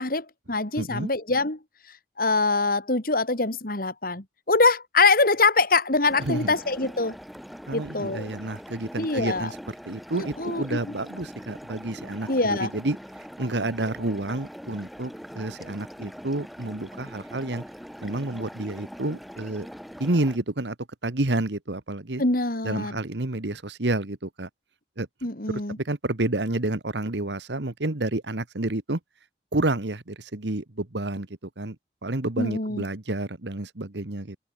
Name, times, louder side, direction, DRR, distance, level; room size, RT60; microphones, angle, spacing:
voice 1, 0.0-1.6 2.2-7.1 7.7-8.3 9.0-9.5 10.1-10.8 12.3-12.7 22.2-23.0 25.2-25.8 32.4-32.8, left 3 dB, 50° left, 3.0 m, -24 dB
voice 2, 0.8-1.1 6.2-6.5 7.7-13.0 13.4-17.6 18.0-19.7 20.0-20.7 21.0-22.2 22.6-24.5 25.0-25.1 25.5-29.0 29.5-31.3 31.6-31.8 32.0-34.4, right 2 dB, 75° right, 1.6 m, -29 dB
sound 1, 6.0-20.4, equal, ahead, 3.0 m, -42 dB
open air
head